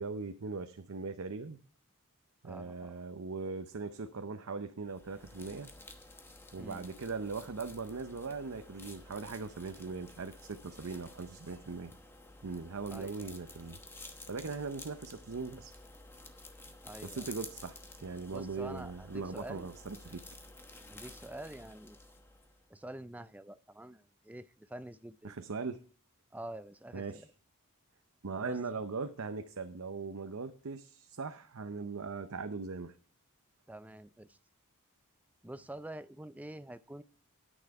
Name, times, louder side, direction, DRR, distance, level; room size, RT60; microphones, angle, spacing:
voice 1, 0.0-1.6 2.4-5.7 6.5-11.9 12.4-13.8 14.3-15.7 17.0-20.2 25.2-25.8 26.9-27.2 28.2-33.0, right 4 dB, 65° right, 9 dB, 0.7 m, -40 dB
voice 2, 2.4-3.0 6.6-6.9 12.9-13.3 16.8-17.3 18.3-19.7 20.9-22.0 22.7-25.4 26.3-27.2 28.4-28.6 33.7-34.4 35.4-37.0, right 1 dB, 5° right, 12 dB, 0.4 m, -47 dB
sound 1, 4.8-22.7, left 2 dB, 10° left, 1.1 m, -52 dB
10.0 x 9.1 x 4.7 m, 0.42 s
head